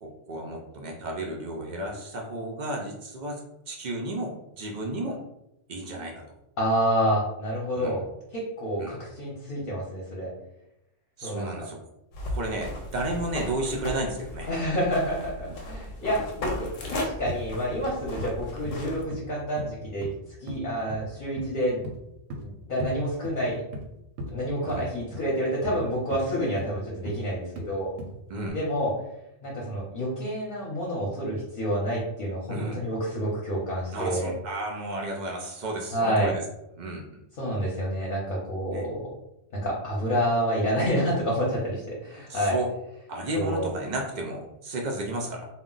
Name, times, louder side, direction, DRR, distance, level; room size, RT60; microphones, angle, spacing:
voice 1, 0.0-3.4 3.7-5.2 5.7-6.2 7.7-8.0 8.8-9.0 11.2-11.8 12.3-14.5 24.6-24.8 28.3-28.6 32.5-32.8 33.9-36.4 36.8-37.2 38.7-38.9 42.3-42.7 43.1-45.5, right 1 dB, 65° right, 0 dB, 0.4 m, -33 dB
voice 2, 6.6-8.0 8.3-10.3 11.2-11.6 14.5-20.1 20.4-21.8 22.4-23.6 24.3-27.9 28.5-28.9 29.4-34.3 35.9-36.3 37.4-39.1 39.5-42.6 43.3-43.7, equal, 50° left, -5 dB, 0.8 m, -28 dB
sound 1, 12.1-19.0, left 1 dB, 90° left, 1.0 m, -37 dB
sound 2, 17.3-17.4 17.7-17.9 18.2-18.3 18.6-18.8 19.1-19.2 19.6-20.1 20.5-20.6 20.9-21.1 21.4-21.5 21.8-22.0 22.3-22.5 22.8-22.9 23.2-23.9 24.2-24.3 24.7-24.8 25.1-25.3 25.6-25.8 26.1-26.3 26.6-26.7 27.1-27.2 27.6-27.7 28.0-28.2 28.5-28.6, equal, 85° right, 1.0 m, -36 dB
2.3 x 2.1 x 3.7 m, 0.85 s
omnidirectional pair, 1.3 m